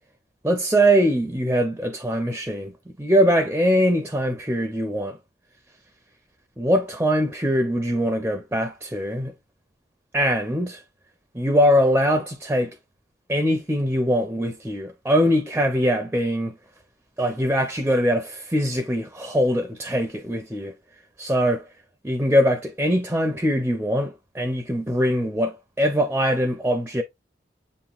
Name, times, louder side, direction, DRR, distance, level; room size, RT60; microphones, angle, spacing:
voice 1, 0.4-2.7 3.0-5.2 6.6-9.3 10.1-10.8 11.3-12.7 13.3-16.5 17.2-20.7 21.2-21.6 22.0-27.0, equal, 10° right, 0.5 m, -22 dB
7.4 x 2.9 x 2.4 m
head